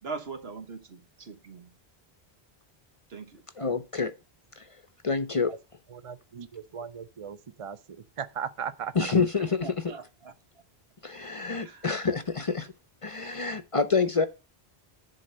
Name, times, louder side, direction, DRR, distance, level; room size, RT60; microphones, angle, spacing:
voice 1, 0.0-1.7 3.1-3.5 9.6-10.3 11.6-12.0, right 4 dB, 75° right, 1.5 m, -41 dB
voice 2, 3.6-4.1 4.6-4.7 5.0-5.5 9.0-9.7 11.0-12.7 13.0-14.3, left 4 dB, 35° left, 0.6 m, -27 dB
voice 3, 5.9-9.0 9.9-10.0, right 7 dB, 45° right, 0.5 m, -38 dB
10.5 x 4.0 x 6.6 m
omnidirectional pair, 1.1 m